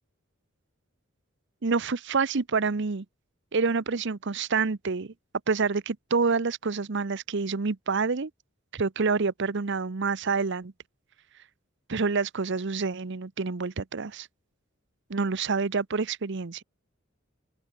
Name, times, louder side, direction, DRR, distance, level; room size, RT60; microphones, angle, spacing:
voice 1, 1.6-3.0 3.5-5.1 5.5-8.3 8.7-10.7 11.9-14.3 15.1-16.6, right 4 dB, 65° right, 0.8 m, -27 dB
open air
head